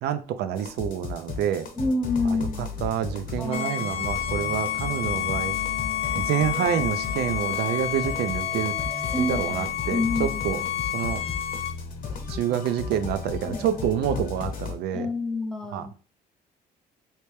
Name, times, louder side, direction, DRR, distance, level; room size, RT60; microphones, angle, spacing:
voice 1, 0.0-1.7 2.8-5.5 6.1-8.8 9.2-10.6 10.9-11.2 12.3-15.1 15.7-15.9, right 9 dB, 75° right, 11 dB, 0.5 m, -27 dB
sound 1, 0.6-14.8, left 5 dB, 55° left, 0.9 m, -35 dB
voice 2, 1.7-2.8 3.4-4.1 9.1-10.7 13.5-13.7 14.9-15.9, left 2 dB, 5° left, 4 dB, 0.7 m, -29 dB
sound 2, 3.4-9.7, left 1 dB, 50° right, 0.8 m, -41 dB
Bowed string instrument, 3.5-11.7, left 11 dB, 40° left, 0.4 m, -30 dB
3.3 x 2.9 x 3.2 m, 0.38 s
cardioid pair, 110°, 17 cm